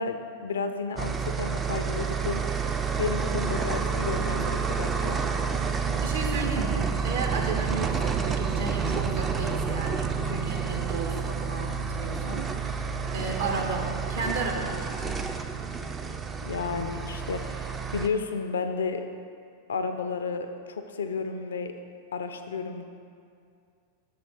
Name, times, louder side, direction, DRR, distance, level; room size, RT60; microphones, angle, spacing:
voice 1, 0.0-2.4 3.0-5.2 16.5-19.0 19.7-21.7 22.1-22.8, left 4 dB, 65° left, 7 dB, 0.4 m, -32 dB
sound 1, 1.0-18.1, right 6 dB, 20° right, 0.3 m, -29 dB
voice 2, 6.0-12.8 13.1-15.0, right 3 dB, 60° right, 1 dB, 0.8 m, -33 dB
6.0 x 3.7 x 5.2 m, 2.3 s
figure-of-eight pair, 90°, 0 cm